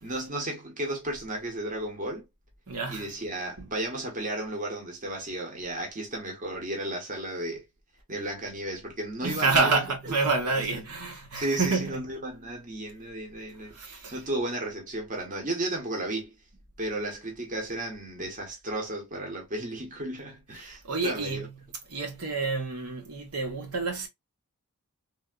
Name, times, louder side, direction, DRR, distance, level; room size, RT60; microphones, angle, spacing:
voice 1, 0.0-2.3 2.9-7.6 8.1-9.8 10.5-10.6 11.3-16.3 16.8-21.4, right 1 dB, 35° right, 1.0 m, -34 dB
voice 2, 2.7-3.1 3.6-3.7 9.2-12.0 13.5-14.2 20.6-24.1, right 3 dB, 80° right, 1.1 m, -29 dB
3.4 x 2.4 x 2.3 m
head